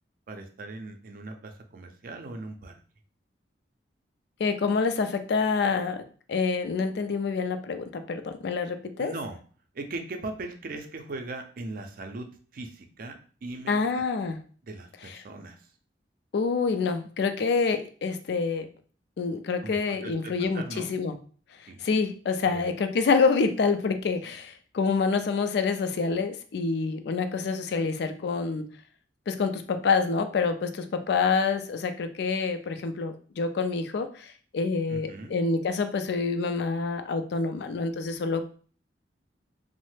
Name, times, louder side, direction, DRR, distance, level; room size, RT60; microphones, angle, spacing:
voice 1, 0.3-2.8 9.0-9.4 9.7-14.0 14.6-15.7 19.6-20.9 21.7-21.9 22.4-22.7 34.9-35.3, right 2 dB, 50° right, 5 dB, 0.4 m, -39 dB
voice 2, 4.4-6.0 6.3-9.1 13.7-14.4 16.3-18.7 19.2-21.2 21.8-28.7 29.3-38.4, left 4 dB, 65° left, 9 dB, 0.4 m, -27 dB
3.1 x 2.0 x 3.1 m, 0.42 s
head